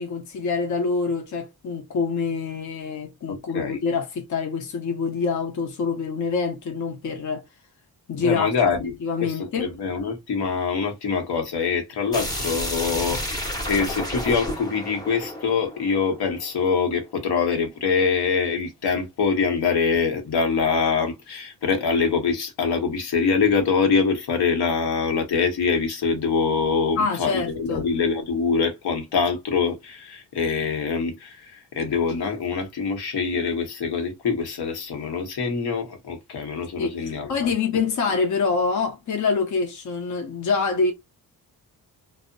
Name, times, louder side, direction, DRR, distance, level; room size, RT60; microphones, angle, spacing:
voice 1, 0.0-7.4 8.1-8.5 9.0-9.7 27.0-27.9 36.8-40.9, left 4 dB, 50° left, 0.6 m, -26 dB
voice 2, 3.3-3.8 8.1-37.5, left 5 dB, 85° left, 0.9 m, -24 dB
sound 1, 12.1-16.8, equal, 10° left, 0.6 m, -31 dB
2.7 x 2.0 x 2.5 m
wide cardioid pair, 170°, 37 cm